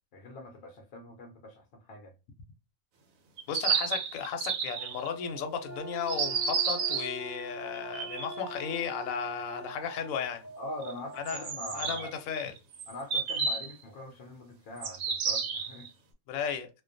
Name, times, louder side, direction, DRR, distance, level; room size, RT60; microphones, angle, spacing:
voice 1, 0.1-2.1 10.6-12.1 12.9-15.9, left 1 dB, 60° left, 0.6 m, -43 dB
sound 1, 3.4-5.1 6.1-7.1 7.8-8.4 10.8-10.9 11.3-13.7 14.8-15.9, right 6 dB, 80° right, 1.0 m, -31 dB
voice 2, 3.5-10.5 11.1-12.5 16.3-16.7, left 7 dB, 80° left, 1.0 m, -35 dB
Alarm, 4.8-11.8, right 4 dB, 55° right, 0.7 m, -47 dB
sound 2, 5.6-9.7, left 1 dB, 25° left, 0.4 m, -45 dB
2.3 x 2.2 x 2.5 m
omnidirectional pair, 1.4 m